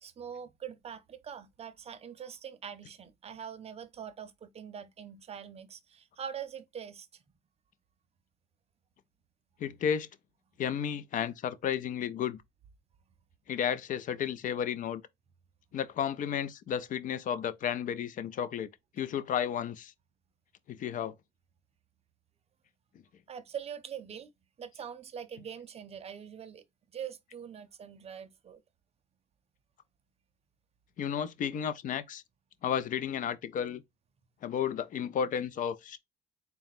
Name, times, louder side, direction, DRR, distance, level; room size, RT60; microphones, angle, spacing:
voice 1, 0.0-7.2 23.3-24.3 24.6-26.6 26.9-28.6, right 8 dB, 35° right, 0.7 m, -43 dB
voice 2, 9.6-10.1 10.6-12.4 13.5-15.0 15.7-18.7 19.0-19.9 20.7-21.1 31.0-32.2 32.6-33.8 34.4-36.0, left 8 dB, 50° left, 0.5 m, -32 dB
4.1 x 2.2 x 4.0 m
cardioid pair, 110°, 17 cm